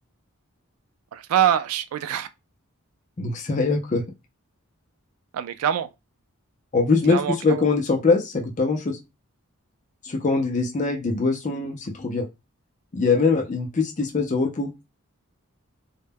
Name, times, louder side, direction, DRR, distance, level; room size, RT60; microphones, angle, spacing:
voice 1, 1.1-2.3 5.3-5.9 7.1-7.6, right 9 dB, 80° right, 0.3 m, -24 dB
voice 2, 3.2-4.0 6.7-9.0 10.0-12.3 12.9-14.7, left 4 dB, 35° left, 0.4 m, -22 dB
2.2 x 2.0 x 3.3 m
head